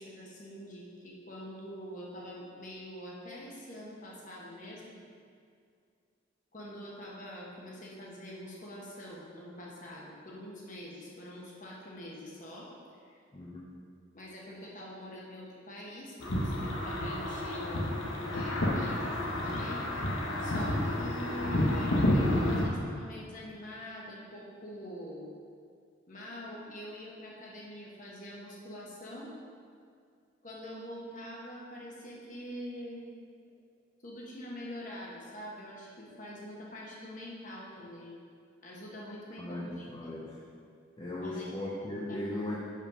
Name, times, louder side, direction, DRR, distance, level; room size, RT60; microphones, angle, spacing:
voice 1, 0.0-4.9 6.5-13.2 14.1-25.3 26.1-29.3 30.4-33.1 34.0-38.2 38.6-40.0 41.2-41.6 42.1-42.3, equal, 40° left, -4 dB, 1.2 m, -45 dB
voice 2, 13.3-13.7 39.4-40.4 41.0-42.5, left 1 dB, 25° left, -5 dB, 0.6 m, -37 dB
sound 1, 16.2-22.6, left 1 dB, 90° left, 1.0 m, -30 dB
5.4 x 5.1 x 5.5 m, 2.3 s
head